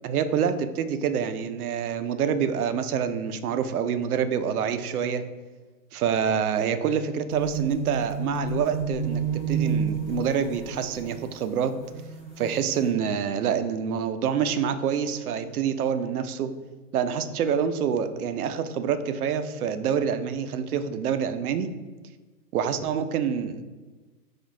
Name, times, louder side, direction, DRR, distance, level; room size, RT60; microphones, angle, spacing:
voice 1, 0.0-5.2 5.9-9.2 9.5-11.7 12.4-16.5 16.9-21.7 22.5-23.6, right 7 dB, 65° right, 9 dB, 0.5 m, -26 dB
sound 1, 7.3-12.9, right 5 dB, 10° left, 1.5 m, -31 dB
4.5 x 2.4 x 3.6 m, 1.3 s
hypercardioid pair, 140°, 49 cm